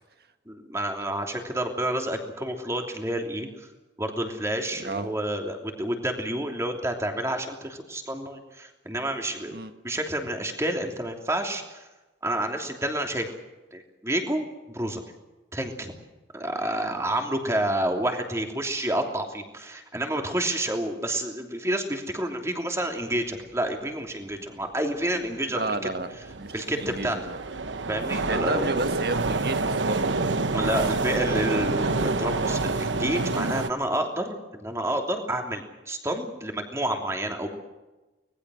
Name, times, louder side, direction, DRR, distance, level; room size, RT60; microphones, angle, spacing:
voice 1, 0.5-3.7 4.0-9.6 9.8-11.8 12.2-13.3 13.7-14.4 14.7-15.0 15.5-15.9 16.3-25.8 26.5-27.2 27.9-28.7 30.5-37.5, right 1 dB, 15° right, 3 dB, 3.0 m, -29 dB
voice 2, 4.8-5.1 9.5-9.7 25.5-26.1 26.4-27.4 28.3-30.3 30.6-30.9, right 2 dB, 55° right, 8 dB, 1.8 m, -32 dB
sound 1, 25.0-25.1 25.7-33.7, right 3 dB, 85° right, 1.1 m, -27 dB
25.0 x 20.0 x 6.4 m, 1.1 s
head